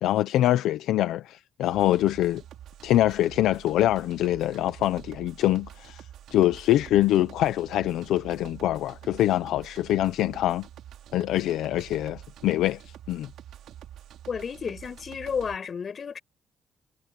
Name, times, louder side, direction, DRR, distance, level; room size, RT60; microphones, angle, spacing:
voice 1, 0.0-2.4 2.8-6.0 6.3-10.7 11.1-12.8 13.1-13.3, left 14 dB, 85° left, 0.8 m, -24 dB
sound 1, 1.6-15.6, right 11 dB, 80° right, 2.8 m, -46 dB
voice 2, 14.3-16.2, left 6 dB, 45° left, 6.8 m, -32 dB
cardioid pair, 90°, 0 cm